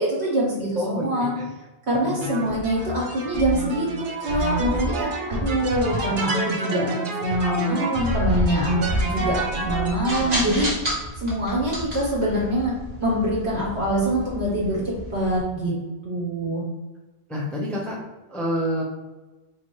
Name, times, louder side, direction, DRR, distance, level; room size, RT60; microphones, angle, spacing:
voice 1, 0.0-1.3 1.9-6.9 7.2-10.7 11.2-12.7 13.0-15.7 16.0-16.6, right 1 dB, 80° right, -5 dB, 1.6 m, -24 dB
voice 2, 0.7-1.4 2.0-2.5 17.3-18.0 18.3-18.8, left 1 dB, ahead, -3 dB, 0.5 m, -28 dB
sound 1, 2.2-10.4, right 1 dB, 55° right, 0.7 m, -28 dB
sound 2, 8.0-15.4, equal, 40° right, 1.1 m, -32 dB
4.3 x 2.6 x 3.0 m, 1.1 s
omnidirectional pair, 1.1 m